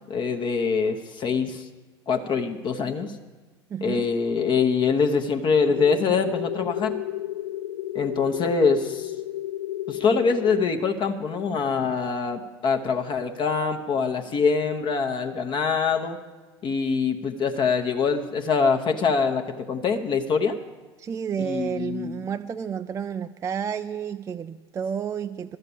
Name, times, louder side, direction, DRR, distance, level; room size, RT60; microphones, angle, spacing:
voice 1, 0.1-1.7 2.1-3.2 3.8-7.0 7.9-9.1 9.9-16.2 16.6-20.6 21.4-22.2, left 5 dB, 35° left, 4 dB, 0.9 m, -24 dB
voice 2, 3.7-4.1 21.0-25.6, right 7 dB, 20° right, 9 dB, 0.4 m, -31 dB
sound 1, 5.7-10.7, left 13 dB, 65° left, 0.5 m, -32 dB
12.5 x 6.6 x 8.4 m, 1.3 s
figure-of-eight pair, 75°, 14 cm